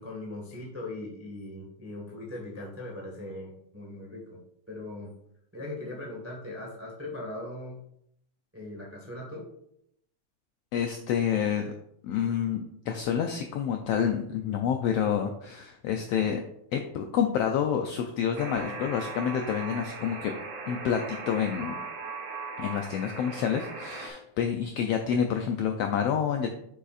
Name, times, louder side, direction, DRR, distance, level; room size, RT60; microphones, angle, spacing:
voice 1, 0.0-4.4 4.7-5.1 5.5-7.8 8.5-9.4, left 2 dB, 20° right, -1 dB, 0.4 m, -39 dB
voice 2, 10.7-11.7 12.0-16.4 16.7-20.3 20.7-21.8 22.6-26.5, left 8 dB, 85° left, 4 dB, 1.4 m, -28 dB
Alarm, 18.4-24.1, right 3 dB, 85° right, 3.0 m, -38 dB
7.5 x 6.7 x 2.5 m, 0.73 s
omnidirectional pair, 3.4 m